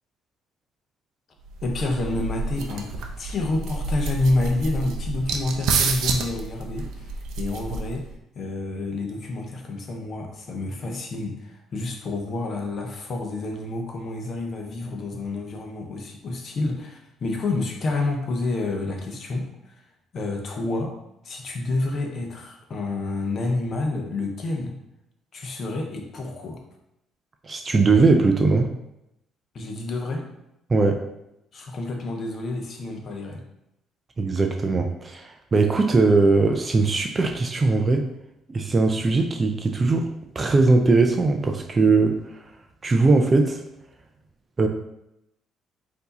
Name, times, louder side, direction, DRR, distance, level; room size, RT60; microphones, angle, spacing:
sound 1, 1.5-8.1, right 4 dB, 75° right, 0.5 m, -29 dB
voice 1, 1.6-2.9 3.2-7.1 7.4-8.1 8.3-19.8 20.1-20.9 21.2-24.8 25.3-26.6 29.5-30.3 31.5-33.4, left 2 dB, 35° left, 2 dB, 0.7 m, -29 dB
voice 2, 27.4-28.7 30.7-31.0 34.2-38.1 38.5-40.1 40.4-42.1 42.8-43.6 44.6-44.7, right 3 dB, 20° right, 4 dB, 0.3 m, -20 dB
4.5 x 2.7 x 4.0 m, 0.84 s
cardioid pair, 165°, 0 cm